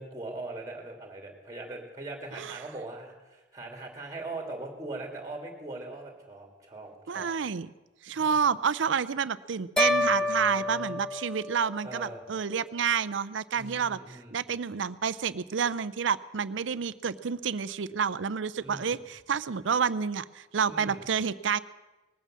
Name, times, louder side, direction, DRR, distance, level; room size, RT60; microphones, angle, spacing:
voice 1, 0.0-7.3 8.1-8.3 9.8-11.0 11.8-12.2 13.5-14.4 18.6-19.0 20.7-21.0, right 2 dB, 20° right, 3 dB, 2.5 m, -41 dB
voice 2, 7.1-7.7 8.0-21.6, right 6 dB, 85° right, 17 dB, 0.5 m, -29 dB
sound 1, 9.8-12.1, left 2 dB, 5° left, 0.5 m, -29 dB
20.0 x 9.1 x 7.4 m, 1.1 s
head